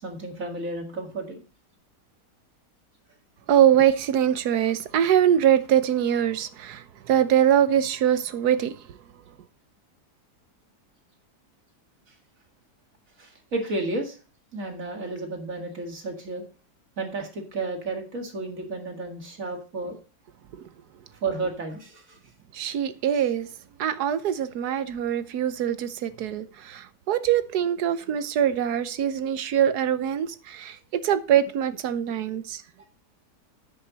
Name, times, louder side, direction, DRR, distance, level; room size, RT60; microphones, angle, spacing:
voice 1, 0.0-1.4 13.2-14.2 14.5-16.4 17.0-20.0 21.2-22.2 32.8-32.9, right 3 dB, 50° right, 2.3 m, -32 dB
voice 2, 3.5-8.8 22.5-23.5 23.8-32.6, right 10 dB, 70° right, 1.3 m, -23 dB
10.0 x 7.8 x 4.0 m
omnidirectional pair, 1.8 m